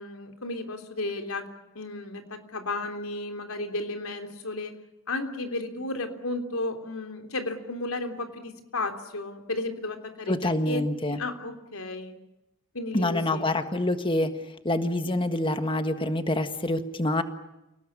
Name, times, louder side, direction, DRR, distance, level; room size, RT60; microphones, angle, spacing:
voice 1, 0.0-1.5 1.7-4.7 5.1-12.2 12.7-13.5, left 2 dB, 90° left, 6 dB, 3.4 m, -33 dB
voice 2, 10.3-11.2 12.9-14.4 14.6-17.2, left 1 dB, 25° left, 9 dB, 1.6 m, -26 dB
29.0 x 18.5 x 9.9 m, 0.95 s
head